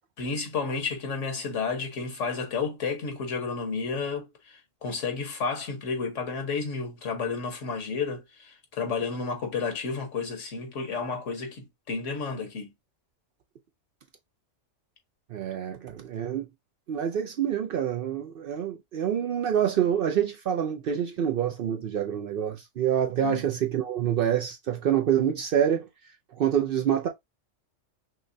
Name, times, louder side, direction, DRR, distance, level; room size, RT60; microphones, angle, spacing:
voice 1, 0.2-12.7 23.2-23.4, left 4 dB, 80° left, 1.4 m, -31 dB
voice 2, 15.3-16.5 16.9-25.9 26.3-27.1, right 9 dB, 60° right, 0.6 m, -26 dB
5.7 x 2.2 x 2.6 m
omnidirectional pair, 1.3 m